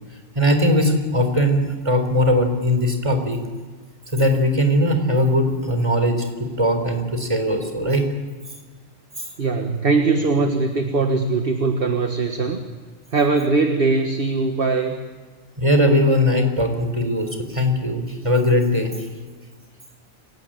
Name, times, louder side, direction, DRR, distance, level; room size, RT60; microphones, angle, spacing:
voice 1, 0.4-3.4 4.1-8.1 9.2-9.3 15.6-18.9, left 1 dB, 25° right, 6 dB, 4.0 m, -20 dB
voice 2, 9.4-12.6 13.1-15.0, right 3 dB, 50° right, 5 dB, 1.7 m, -21 dB
28.5 x 17.5 x 8.9 m, 1.5 s
omnidirectional pair, 1.2 m